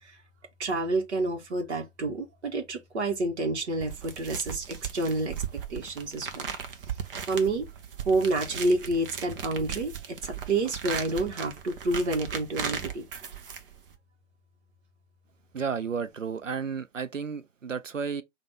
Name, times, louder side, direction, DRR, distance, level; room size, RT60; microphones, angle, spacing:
voice 1, 0.6-5.4 5.7-6.6 7.3-7.7 8.0-13.0, right 2 dB, 65° right, 1.2 m, -29 dB
sound 1, 3.8-14.0, right 7 dB, 45° right, 0.8 m, -37 dB
voice 2, 15.5-18.2, right 6 dB, 85° right, 0.7 m, -32 dB
5.2 x 2.5 x 3.3 m
figure-of-eight pair, 130°, 37 cm